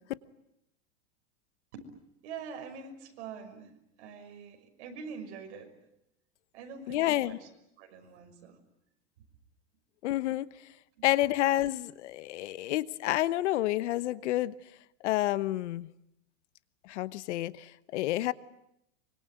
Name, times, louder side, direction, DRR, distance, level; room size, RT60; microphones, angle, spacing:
voice 1, 2.2-3.7 4.0-5.7 6.5-7.5 7.8-8.6 11.0-11.1, right 5 dB, 60° right, 4 dB, 6.2 m, -44 dB
voice 2, 6.9-7.4 10.0-10.5 11.0-14.5 15.0-15.9 16.8-18.3, left 15 dB, 70° left, 16 dB, 1.1 m, -29 dB
25.0 x 24.0 x 9.3 m, 0.81 s
supercardioid pair, 155°, 36 cm